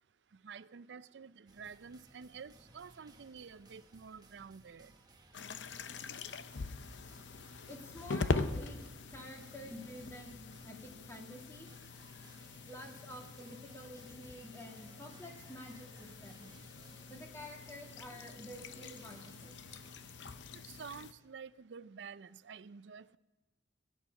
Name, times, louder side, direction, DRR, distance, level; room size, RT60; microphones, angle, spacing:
voice 1, 0.4-4.9 20.5-23.2, right 6 dB, 75° right, 0.5 m, -50 dB
sound 1, 1.5-20.4, right 2 dB, 25° right, 1.2 m, -61 dB
sound 2, 5.3-21.1, left 3 dB, 80° left, 0.7 m, -43 dB
voice 2, 7.7-8.8 9.1-11.7 12.7-16.5 17.1-19.5, equal, 15° left, 2.2 m, -49 dB
17.5 x 9.1 x 7.0 m
head